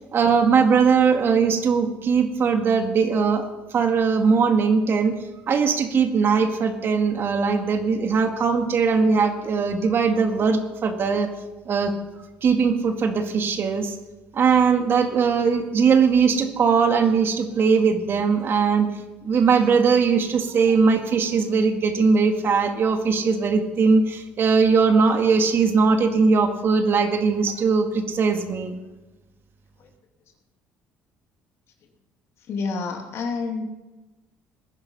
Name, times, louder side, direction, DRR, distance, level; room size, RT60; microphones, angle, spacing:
voice 1, 0.0-5.2 5.5-11.3 11.7-11.9 12.4-14.0 14.3-18.9 19.2-28.8, right 5 dB, 50° right, 5 dB, 2.1 m, -20 dB
voice 2, 32.5-33.6, left 4 dB, 60° left, 3 dB, 2.7 m, -28 dB
19.5 x 10.5 x 5.6 m, 1.1 s
cardioid pair, 90°, 5 cm